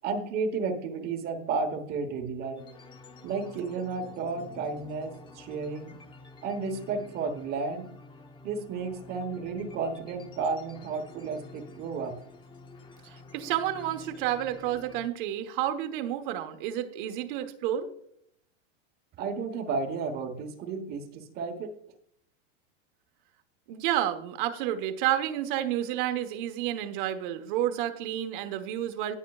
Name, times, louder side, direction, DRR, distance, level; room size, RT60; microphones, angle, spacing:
voice 1, 0.0-2.6 3.2-6.0 6.4-7.9 8.4-12.1 19.2-21.7, right 4 dB, 30° right, 6 dB, 1.2 m, -32 dB
sound 1, 2.6-15.1, left 3 dB, 15° left, 0.7 m, -49 dB
voice 2, 13.0-17.9 23.7-29.2, right 12 dB, 55° right, 7 dB, 1.3 m, -30 dB
17.5 x 6.7 x 2.4 m, 0.69 s
supercardioid pair, 155°, 31 cm